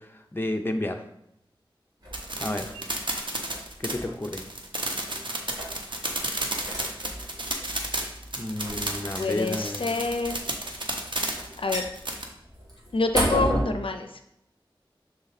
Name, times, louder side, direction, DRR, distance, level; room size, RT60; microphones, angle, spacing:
voice 1, 0.3-1.0 2.4-2.7 3.8-4.4 8.4-9.9, left 1 dB, 25° left, 4 dB, 0.6 m, -30 dB
sound 1, 2.0-13.6, equal, 45° right, 2.3 m, -35 dB
sound 2, 2.1-12.2, right 2 dB, 65° right, 0.9 m, -32 dB
voice 2, 9.2-10.4 11.1-11.3 11.6-11.9 12.9-14.3, left 3 dB, 75° left, 7 dB, 0.5 m, -27 dB
6.4 x 3.9 x 4.1 m, 0.82 s
wide cardioid pair, 60°, 9 cm